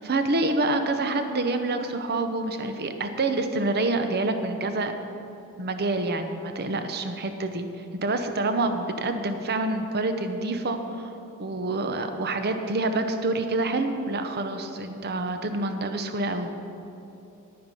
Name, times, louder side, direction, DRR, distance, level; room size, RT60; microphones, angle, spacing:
voice 1, 0.0-4.9 5.6-7.6 7.9-11.1 11.4-16.5, right 2 dB, 45° right, 7 dB, 0.8 m, -27 dB
10.5 x 9.5 x 5.5 m, 2.9 s
head